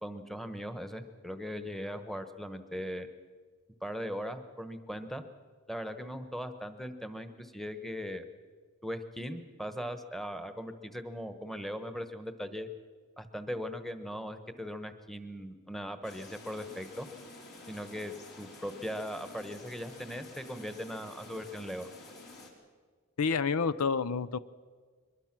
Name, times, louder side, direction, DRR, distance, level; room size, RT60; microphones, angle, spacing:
voice 1, 0.0-3.1 3.8-5.2 5.7-8.2 8.8-12.7 13.2-17.1 17.7-21.9, equal, ahead, 9 dB, 1.2 m, -39 dB
sound 1, 16.0-22.5, left 2 dB, 50° left, 3.8 m, -50 dB
voice 2, 23.2-24.4, left 5 dB, 80° left, 15 dB, 0.6 m, -29 dB
23.5 x 21.5 x 6.1 m, 1.5 s
head